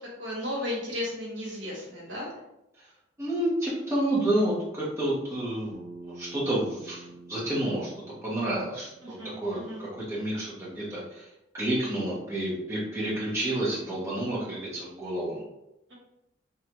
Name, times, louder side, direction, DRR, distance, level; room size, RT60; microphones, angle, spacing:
voice 1, 0.2-2.3 9.0-9.8, left 1 dB, 75° right, -3 dB, 1.0 m, -34 dB
voice 2, 3.2-5.8 6.0-7.0 7.3-7.9 8.2-11.3 11.5-15.4, right 1 dB, 15° right, -7 dB, 0.7 m, -29 dB
Bass guitar, 5.7-10.0, right 2 dB, 45° right, 0.7 m, -48 dB
3.2 x 2.4 x 2.9 m, 0.88 s
head